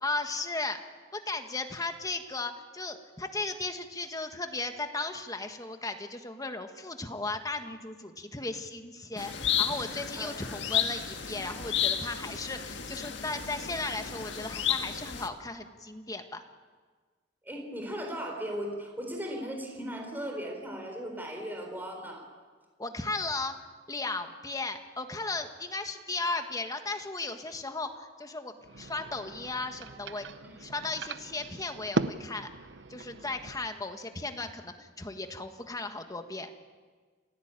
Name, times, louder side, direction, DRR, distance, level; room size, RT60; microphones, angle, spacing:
voice 1, 0.0-0.8 1.1-16.4 22.8-23.5 23.9-30.3 30.6-32.5 32.9-36.5, left 3 dB, 20° left, 6 dB, 1.6 m, -36 dB
sound 1, 9.2-15.3, left 8 dB, 70° left, 1.8 m, -32 dB
voice 2, 17.4-22.3 30.4-30.5, equal, 10° right, 2 dB, 4.1 m, -37 dB
sound 2, 28.6-33.7, right 3 dB, 70° right, 0.8 m, -38 dB
28.0 x 16.5 x 9.1 m, 1.5 s
head